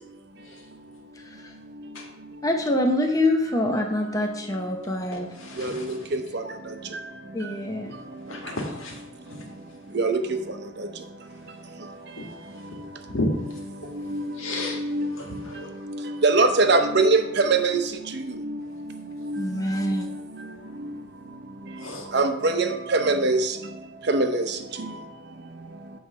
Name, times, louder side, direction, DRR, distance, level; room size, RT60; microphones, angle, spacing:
voice 1, 1.2-1.5 2.4-5.3 7.3-7.9 19.4-20.1, left 1 dB, 15° left, 2 dB, 0.7 m, -25 dB
voice 2, 5.1-6.2 7.9-9.9 11.2-16.2 18.6-18.7 19.2-19.6 20.5-20.8 21.8-22.1, left 1 dB, 75° left, 1 dB, 1.8 m, -36 dB
voice 3, 9.9-10.4 14.1-14.2 14.8-15.1 16.2-17.8 19.3-19.4 22.1-23.5 24.1-24.4, right 3 dB, 50° right, 8 dB, 0.7 m, -21 dB
9.2 x 3.3 x 6.7 m, 0.89 s
head